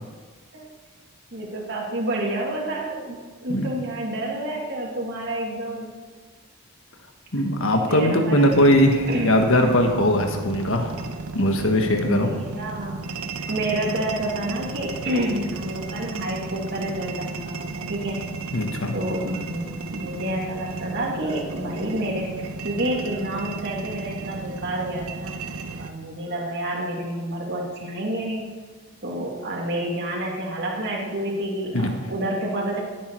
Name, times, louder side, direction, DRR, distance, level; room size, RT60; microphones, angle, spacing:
voice 1, 1.3-3.2 3.4-5.9 7.8-8.7 9.1-9.8 12.0-13.0 13.5-18.2 18.9-22.3 22.6-25.3 25.8-28.5 29.0-32.8, right 1 dB, 50° right, -2 dB, 2.5 m, -29 dB
voice 2, 7.3-10.9 11.3-12.3 18.5-19.0 31.7-31.9, left 1 dB, 65° left, 4 dB, 1.6 m, -20 dB
sound 1, 8.5-25.9, right 3 dB, 85° right, 0.9 m, -34 dB
17.0 x 9.4 x 4.7 m, 1.4 s
head